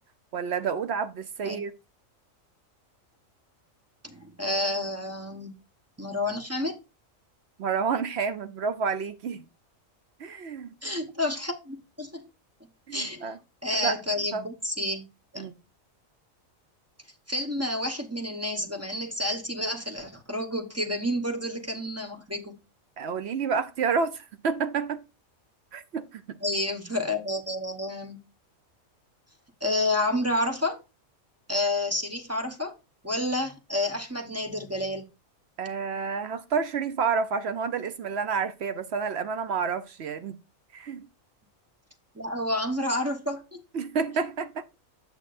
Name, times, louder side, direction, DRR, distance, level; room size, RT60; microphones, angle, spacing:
voice 1, 0.3-1.7 7.6-9.4 10.2-10.7 12.9-13.4 13.8-14.0 14.3-14.4 15.4-15.5 23.0-25.0 25.7-26.4 35.6-40.4 40.7-41.1 43.7-44.6, right 5 dB, 60° right, 0.8 m, -29 dB
voice 2, 4.0-5.6 6.0-6.8 10.8-12.3 12.9-13.3 13.6-15.1 15.3-15.5 17.3-22.6 26.4-28.2 29.6-30.8 31.5-32.7 33.0-35.1 42.1-43.6, left 1 dB, 15° right, 0.9 m, -29 dB
8.4 x 6.6 x 2.5 m
omnidirectional pair, 1.4 m